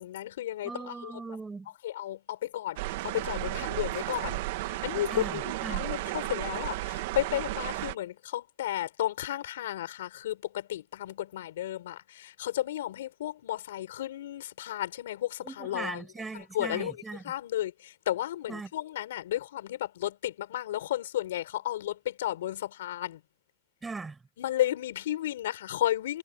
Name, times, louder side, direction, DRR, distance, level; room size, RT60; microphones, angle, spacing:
voice 1, 0.0-1.2 1.8-2.8 3.0-16.0 16.3-16.9 17.2-23.2 24.4-26.2, left 13 dB, 85° left, 5.9 m, -33 dB
voice 2, 0.6-1.7 5.1-5.8 15.4-17.2 18.5-18.7 23.8-24.2, right 4 dB, 10° right, 5.5 m, -39 dB
sound 1, 2.8-7.9, right 19 dB, 65° right, 1.6 m, -33 dB
supercardioid pair, 130°, 0 cm